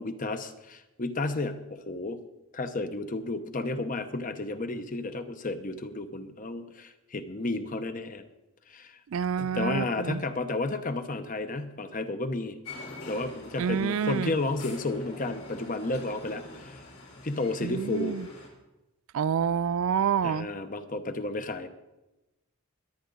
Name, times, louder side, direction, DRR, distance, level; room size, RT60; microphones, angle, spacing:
voice 1, 0.0-2.2 2.5-8.2 8.7-9.0 9.4-12.6 13.1-16.9 17.2-18.2 20.2-21.7, left 2 dB, 40° left, 9 dB, 0.9 m, -32 dB
voice 2, 9.1-10.2 13.6-14.3 17.6-18.3 19.1-20.5, right 7 dB, 70° right, 18 dB, 0.4 m, -28 dB
sound 1, 12.6-18.5, left 2 dB, 80° left, 4.1 m, -45 dB
21.0 x 9.4 x 3.9 m, 1.0 s
head